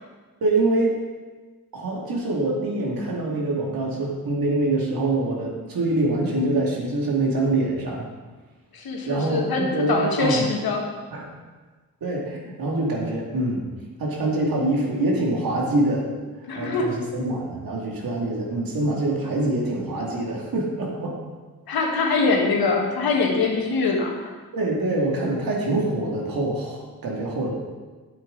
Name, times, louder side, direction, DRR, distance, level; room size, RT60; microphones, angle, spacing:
voice 1, 0.4-1.0 1.7-8.1 9.1-10.4 11.1-11.3 12.0-13.6 14.0-16.0 16.5-21.2 24.5-27.5, right 2 dB, 65° right, -2 dB, 2.4 m, -25 dB
voice 2, 8.7-10.9 16.5-16.9 21.7-24.3, left 4 dB, 75° left, 1 dB, 1.7 m, -23 dB
9.1 x 7.9 x 3.9 m, 1.3 s
supercardioid pair, 50°, 37 cm